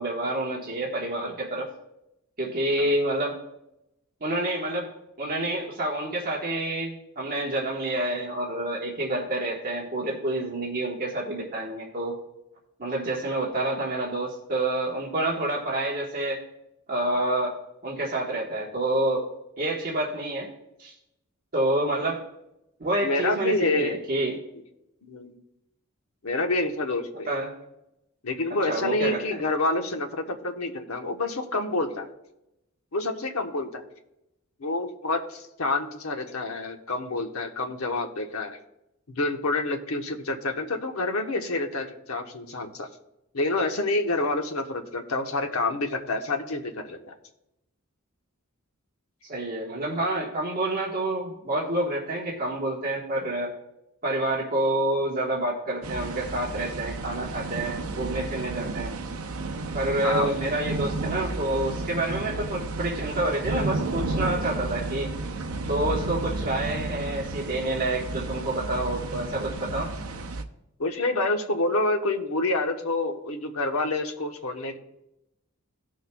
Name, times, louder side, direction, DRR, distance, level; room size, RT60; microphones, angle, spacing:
voice 1, 0.0-1.7 2.4-3.4 4.2-4.9 5.2-12.1 12.8-16.4 16.9-17.5 17.8-19.2 19.6-20.5 20.8-20.9 21.5-22.2 22.8-24.4 27.3-27.5 28.7-29.4 49.3-53.5 54.0-58.9 59.7-65.1 65.7-69.9, right 1 dB, 40° right, -3 dB, 1.4 m, -28 dB
voice 2, 23.0-24.0 25.0-25.3 26.2-27.3 28.2-32.1 32.9-33.8 34.6-38.6 39.1-42.9 43.3-47.0 60.0-60.3 70.8-74.8, left 2 dB, 80° left, 4 dB, 1.1 m, -28 dB
sound 1, 55.8-70.4, right 2 dB, 85° right, 0.8 m, -32 dB
17.5 x 6.4 x 2.3 m, 0.88 s
head